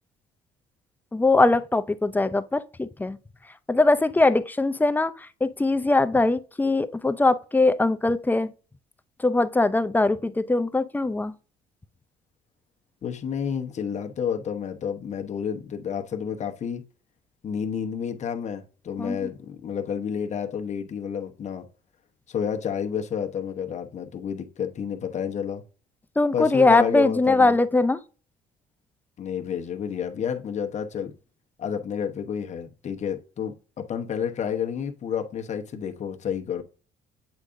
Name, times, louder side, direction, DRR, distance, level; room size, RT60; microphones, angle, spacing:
voice 1, 1.1-3.2 3.7-8.5 9.2-11.3 19.0-19.3 26.2-28.0, left 2 dB, 10° left, 0.5 m, -21 dB
voice 2, 13.0-16.8 17.4-21.7 22.3-25.6 26.3-27.6 29.2-31.1 31.6-36.6, left 7 dB, 45° left, 1.0 m, -30 dB
8.2 x 4.8 x 2.6 m
cardioid pair, 110°, 17 cm